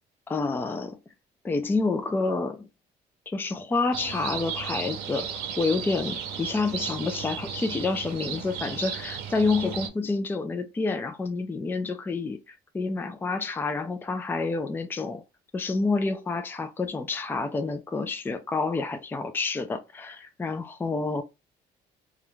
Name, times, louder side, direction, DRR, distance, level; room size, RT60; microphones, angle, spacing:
voice 1, 0.3-1.0 1.4-2.7 3.3-15.2 15.5-21.2, left 3 dB, 10° left, 0.3 m, -28 dB
sound 1, 3.9-9.9, right 8 dB, 90° right, 0.6 m, -35 dB
2.4 x 2.1 x 3.0 m
cardioid pair, 110°, 17 cm